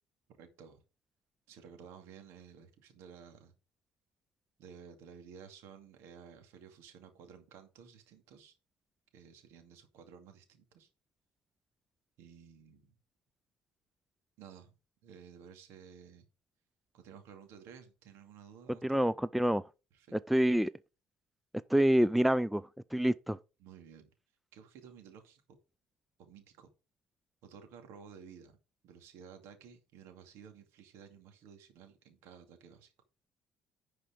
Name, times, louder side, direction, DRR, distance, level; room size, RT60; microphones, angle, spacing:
voice 1, 0.4-0.8 1.5-3.5 4.6-8.5 9.1-10.9 12.2-13.0 14.4-14.8 15.0-16.3 16.9-19.2 19.9-20.1 23.6-24.1 24.5-25.6 26.2-26.7 27.4-28.6 28.8-32.9, right 7 dB, 75° right, 2.4 m, -54 dB
voice 2, 18.8-19.6 20.1-20.7 21.7-22.6 22.9-23.4, equal, ahead, 0.4 m, -27 dB
10.5 x 5.0 x 5.0 m
cardioid pair, 100°, 5 cm